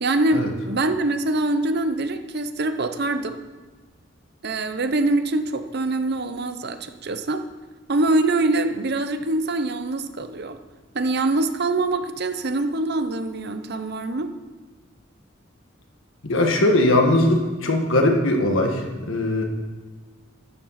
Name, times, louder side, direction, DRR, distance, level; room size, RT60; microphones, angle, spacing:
voice 1, 0.0-3.4 4.4-7.4 7.9-10.6 10.9-14.3, right 2 dB, 55° right, 9 dB, 0.8 m, -24 dB
voice 2, 16.2-19.4, left 1 dB, 70° left, 2 dB, 1.7 m, -20 dB
12.0 x 7.4 x 5.8 m, 1.3 s
head